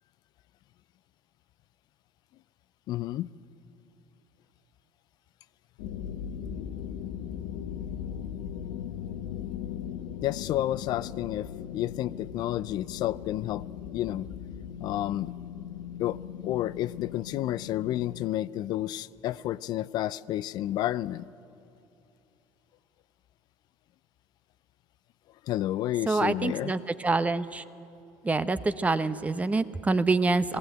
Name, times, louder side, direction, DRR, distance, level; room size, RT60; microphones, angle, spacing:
voice 1, 2.9-3.3 10.2-13.6 13.9-14.3 14.8-15.3 16.0-21.3 25.4-26.7, left 13 dB, 55° left, 17 dB, 0.4 m, -30 dB
sound 1, 5.8-18.3, left 9 dB, 80° left, 0.9 m, -38 dB
voice 2, 26.1-27.6 28.2-30.6, right 3 dB, 15° right, 13 dB, 0.8 m, -26 dB
19.0 x 15.5 x 9.1 m, 2.7 s
supercardioid pair, 85°, 8 cm